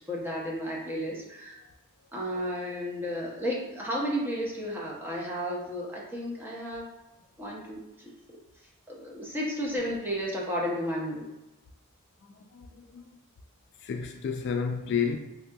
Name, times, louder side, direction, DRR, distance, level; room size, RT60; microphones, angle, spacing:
voice 1, 0.1-1.6 2.1-6.9 7.4-8.1 8.9-11.2, equal, 10° right, 0.6 m, -33 dB
voice 2, 12.2-13.0 13.8-15.2, left 6 dB, 55° left, 0.3 m, -31 dB
3.3 x 2.7 x 2.2 m
head